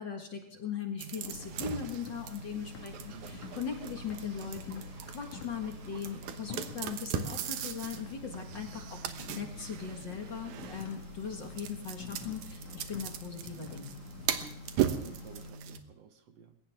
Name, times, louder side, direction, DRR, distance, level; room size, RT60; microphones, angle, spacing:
voice 1, 0.0-13.9, left 7 dB, 45° left, 3 dB, 2.1 m, -39 dB
sound 1, 1.0-15.8, right 9 dB, 85° right, 2.6 m, -39 dB
sound 2, 1.1-11.8, right 2 dB, 40° right, 4.1 m, -59 dB
sound 3, 1.2-15.5, left 5 dB, 85° left, 3.1 m, -49 dB
voice 2, 3.0-3.4 14.8-16.6, right 7 dB, 65° right, 7 dB, 2.2 m, -54 dB
21.5 x 18.5 x 3.6 m, 0.62 s
omnidirectional pair, 3.4 m